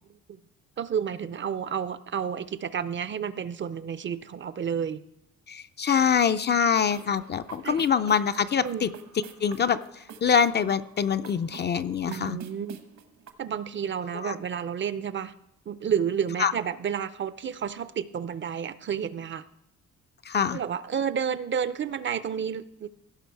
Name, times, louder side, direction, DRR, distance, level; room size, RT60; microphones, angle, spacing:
voice 1, 0.8-5.0 7.6-7.8 8.6-8.9 12.1-12.8 13.4-15.3 15.7-19.4 20.5-22.9, right 8 dB, 40° right, 15 dB, 0.5 m, -30 dB
voice 2, 5.5-8.9 9.4-9.8 10.2-12.4 14.2-14.3 16.4-16.5 20.3-20.6, left 7 dB, 35° left, 11 dB, 0.4 m, -24 dB
sound 1, 6.8-13.3, right 6 dB, 65° right, 1.1 m, -47 dB
16.5 x 6.0 x 4.6 m, 0.78 s
cardioid pair, 90°, 30 cm